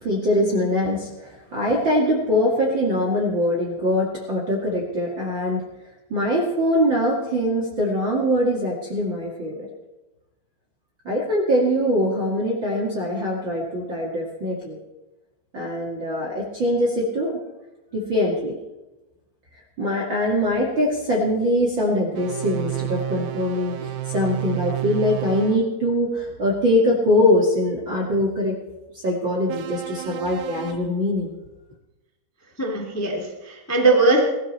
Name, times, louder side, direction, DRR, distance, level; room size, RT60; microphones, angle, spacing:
voice 1, 0.0-5.6 6.1-9.7 11.0-14.8 15.5-17.4 17.9-18.5 19.8-28.5 28.9-31.3, left 1 dB, 40° right, -3 dB, 1.8 m, -22 dB
sound 1, 22.1-25.6 29.5-30.7, right 15 dB, 70° right, 2.5 m, -31 dB
voice 2, 32.6-34.2, right 3 dB, 10° left, 0 dB, 0.9 m, -20 dB
19.5 x 14.0 x 4.3 m, 1.1 s
omnidirectional pair, 5.3 m